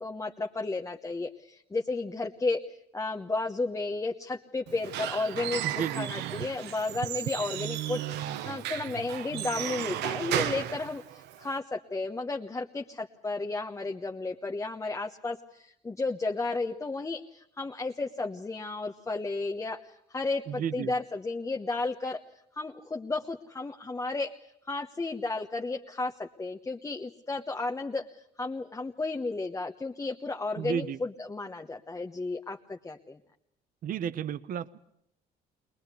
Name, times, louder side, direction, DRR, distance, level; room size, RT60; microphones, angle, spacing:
voice 1, 0.0-2.6 2.9-5.6 6.0-22.2 22.5-24.3 24.6-33.2, left 3 dB, 15° left, 3 dB, 1.1 m, -33 dB
Squeak / Wood, 4.7-11.6, right 11 dB, 85° right, 1.1 m, -34 dB
voice 2, 5.6-6.1 20.5-20.9 30.6-31.0 33.8-34.8, right 8 dB, 55° right, 16 dB, 0.9 m, -32 dB
22.0 x 20.0 x 8.3 m, 0.75 s
cardioid pair, 110°, 17 cm